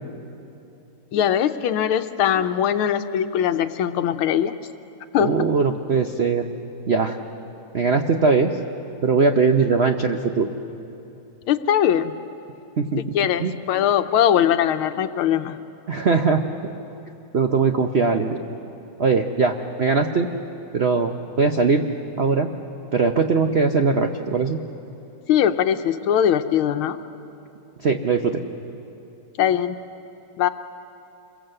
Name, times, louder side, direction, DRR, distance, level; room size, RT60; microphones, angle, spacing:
voice 1, 1.1-4.5 5.1-5.3 11.5-12.2 13.1-15.6 25.3-27.0 29.4-29.8 30.4-30.5, left 9 dB, 80° left, 10 dB, 1.6 m, -21 dB
voice 2, 5.2-6.4 6.9-7.2 7.7-8.5 9.0-10.5 12.8-13.0 13.4-13.6 15.9-16.4 17.3-18.4 19.0-20.3 20.7-21.1 21.4-21.8 22.2-22.5 22.9-24.6 27.8-28.4, right 4 dB, 75° right, 5 dB, 0.5 m, -20 dB
27.0 x 22.0 x 7.8 m, 2.8 s
omnidirectional pair, 2.4 m